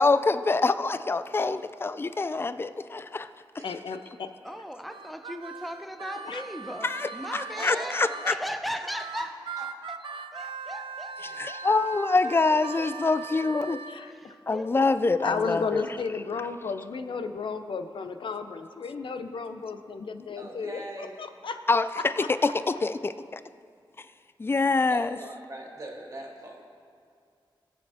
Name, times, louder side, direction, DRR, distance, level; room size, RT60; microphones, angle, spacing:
voice 1, 0.0-3.3 6.8-8.3 11.4-13.8 14.5-15.9 21.7-22.2 22.7-23.4 24.4-25.2, left 3 dB, 25° left, 12 dB, 0.4 m, -25 dB
voice 2, 3.6-4.3 6.2-6.4 13.9-14.4 15.2-21.6 21.9-22.5, left 5 dB, 75° left, 8 dB, 0.6 m, -34 dB
voice 3, 4.4-10.1 10.3-11.5 12.2-12.9 13.2-13.7 14.0-14.7, equal, ahead, 7 dB, 0.8 m, -38 dB
Harmonica, 4.9-8.4 8.9-14.0, right 6 dB, 85° right, 0.4 m, -40 dB
voice 4, 7.6-8.4 8.8-9.3 9.6-9.7 10.0-10.4 20.4-21.1 24.9-26.6, right 1 dB, 45° right, -1 dB, 2.2 m, -41 dB
20.0 x 7.1 x 3.5 m, 2.2 s
cardioid pair, 70°, 9 cm